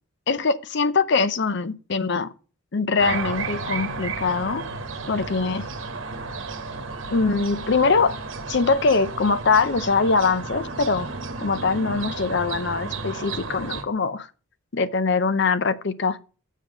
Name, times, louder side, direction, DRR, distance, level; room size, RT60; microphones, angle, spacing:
voice 1, 0.3-2.3 2.7-4.6 5.1-5.6 7.1-8.2 8.5-11.1 11.4-14.3 14.7-16.2, left 4 dB, 50° left, 0.6 m, -22 dB
sound 1, 3.0-13.8, right 4 dB, 60° right, 1.1 m, -33 dB
7.4 x 5.7 x 5.0 m
head